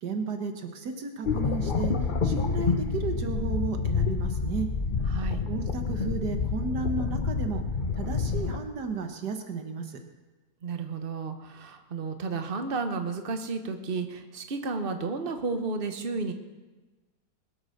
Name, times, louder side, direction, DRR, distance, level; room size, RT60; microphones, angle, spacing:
voice 1, 0.0-1.9 2.2-4.7 5.5-7.6 8.0-10.0, right 4 dB, 75° right, 5 dB, 1.8 m, -33 dB
sound 1, 1.3-8.6, left 5 dB, 40° left, 0.8 m, -28 dB
voice 2, 5.1-5.4 10.6-16.3, right 4 dB, 35° right, 7 dB, 1.2 m, -32 dB
21.0 x 8.0 x 6.6 m, 1.2 s
omnidirectional pair, 1.8 m